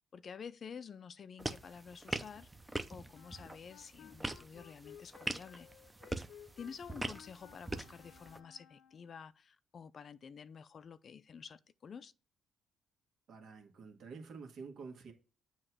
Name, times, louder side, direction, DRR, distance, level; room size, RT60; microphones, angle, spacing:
voice 1, 0.1-2.5 2.9-5.7 6.6-12.1, left 6 dB, 50° left, 0.4 m, -50 dB
sound 1, 1.4-8.4, right 2 dB, 10° right, 0.6 m, -43 dB
Wind instrument woodwind instrument, 3.1-9.2, left 9 dB, 80° left, 0.7 m, -58 dB
voice 2, 13.3-15.1, right 5 dB, 65° right, 1.8 m, -49 dB
7.6 x 3.0 x 6.0 m
cardioid pair, 100°, 0 cm